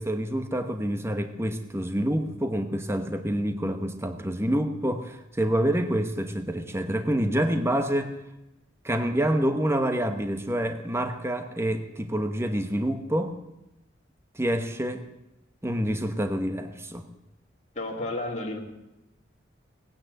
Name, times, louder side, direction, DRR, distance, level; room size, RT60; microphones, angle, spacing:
voice 1, 0.0-8.2 8.8-13.4 14.3-15.0 15.6-17.0, right 1 dB, 15° right, 7 dB, 1.0 m, -27 dB
voice 2, 17.7-18.6, left 2 dB, 40° left, -1 dB, 2.4 m, -31 dB
18.0 x 9.3 x 7.8 m, 0.97 s
head